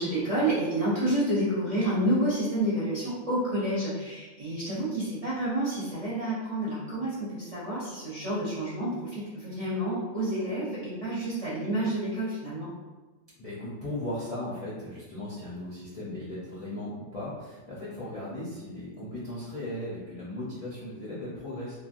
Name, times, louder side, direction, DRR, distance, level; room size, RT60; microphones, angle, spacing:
voice 1, 0.0-12.7, right 1 dB, 35° right, -10 dB, 0.6 m, -29 dB
voice 2, 13.4-21.8, left 1 dB, 45° left, -9 dB, 0.4 m, -37 dB
3.1 x 2.3 x 2.5 m, 1.2 s
omnidirectional pair, 1.4 m